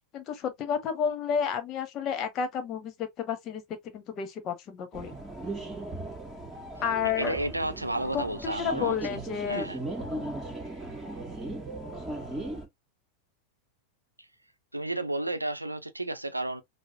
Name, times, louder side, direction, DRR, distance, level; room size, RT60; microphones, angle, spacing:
voice 1, 0.1-5.1 6.8-7.4 8.1-9.7, left 7 dB, 35° left, 1.0 m, -31 dB
sound 1, 4.9-12.6, right 2 dB, 15° right, 1.7 m, -37 dB
voice 2, 7.2-9.2 9.5-9.8 14.7-16.6, right 1 dB, 85° right, 0.6 m, -32 dB
5.7 x 2.1 x 2.7 m
figure-of-eight pair, 90°, 0 cm